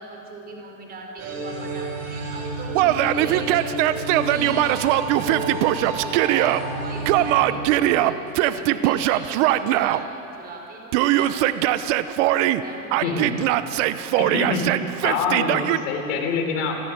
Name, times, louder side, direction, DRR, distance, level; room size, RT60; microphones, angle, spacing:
voice 1, 0.0-3.8 4.3-11.8 12.6-13.4, right 2 dB, 20° right, 1 dB, 4.4 m, -38 dB
sound 1, 1.2-8.2, right 2 dB, 35° right, 4.8 m, -31 dB
Yell, 2.7-6.6 7.1-10.0 10.9-12.6 12.9-15.8, right 14 dB, 60° right, 0.9 m, -21 dB
voice 2, 14.2-14.7 15.0-16.8, left 4 dB, 65° left, 3 dB, 4.2 m, -25 dB
28.0 x 10.5 x 9.5 m, 2.9 s
supercardioid pair, 140°, 42 cm